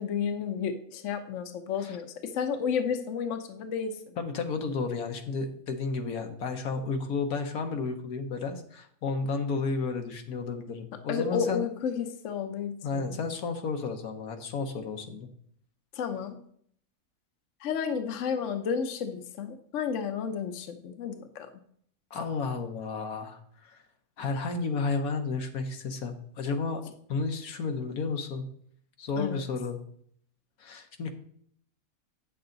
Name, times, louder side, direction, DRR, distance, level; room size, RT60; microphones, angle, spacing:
voice 1, 0.0-4.2 11.1-13.2 15.9-16.4 17.6-21.5 29.2-29.4, left 7 dB, 60° left, 7 dB, 1.1 m, -32 dB
voice 2, 4.2-11.7 12.8-15.3 22.1-23.8 24.2-26.8 27.1-28.5 29.0-29.8 30.6-31.1, left 4 dB, 85° left, 5 dB, 1.5 m, -32 dB
8.6 x 7.0 x 3.9 m, 0.63 s
omnidirectional pair, 1.5 m